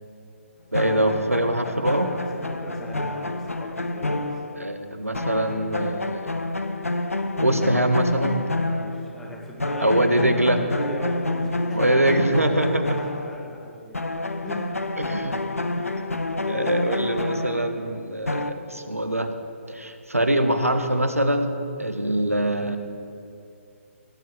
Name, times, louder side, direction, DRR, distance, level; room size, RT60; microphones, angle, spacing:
sound 1, 0.7-4.9 5.1-9.3 9.6-13.7 13.9-18.5, left 2 dB, 80° left, 1.0 m, -28 dB
voice 1, 0.7-2.1 4.6-6.3 7.4-8.5 9.8-10.6 11.7-13.0 15.0-15.4 16.0-16.1 16.5-19.3 19.7-22.8, right 1 dB, 90° right, 8 dB, 1.6 m, -23 dB
voice 2, 1.6-4.4 8.6-14.0 14.4-14.9 16.4-16.7, equal, 5° left, -3 dB, 2.4 m, -39 dB
17.5 x 7.7 x 8.3 m, 2.6 s
figure-of-eight pair, 140°, 8 cm